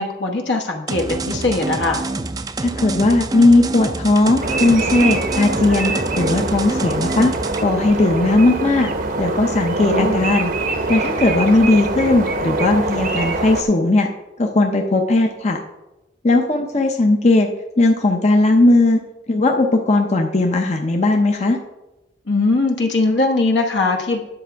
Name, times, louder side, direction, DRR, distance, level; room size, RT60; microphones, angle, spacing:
voice 1, 0.0-2.1 9.8-10.3 22.3-24.2, left 3 dB, 65° left, 1 dB, 1.1 m, -20 dB
sound 1, 0.9-7.6, right 3 dB, 20° right, 0.4 m, -27 dB
voice 2, 2.6-7.3 7.6-8.9 9.2-10.5 10.9-14.1 14.4-15.6 16.2-17.5 17.8-19.0 19.3-21.6, left 2 dB, 35° left, 3 dB, 0.7 m, -17 dB
sound 2, 4.4-13.6, right 2 dB, 50° right, 0.8 m, -23 dB
9.9 x 6.8 x 4.6 m, 1.0 s
head